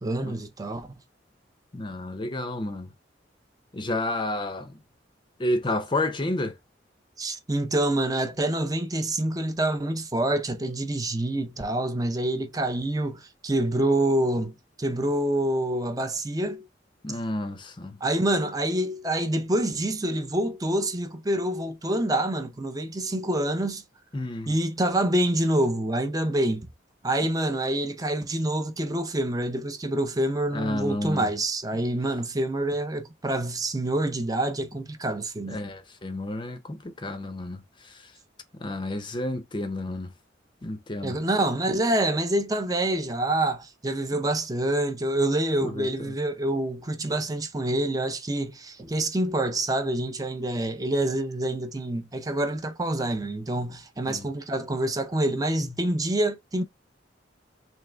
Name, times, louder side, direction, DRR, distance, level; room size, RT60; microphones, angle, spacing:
voice 1, 0.0-0.9 7.2-16.7 18.0-23.8 24.5-26.7 27.0-35.6 41.0-56.6, right 1 dB, 20° right, 0.5 m, -26 dB
voice 2, 1.7-2.9 3.7-4.8 5.4-6.6 17.0-18.0 24.1-24.5 30.5-31.3 35.5-37.9 38.6-40.1 40.6-41.2 45.6-46.1 54.1-54.3, left 1 dB, 25° left, 0.5 m, -31 dB
3.6 x 3.1 x 3.3 m
head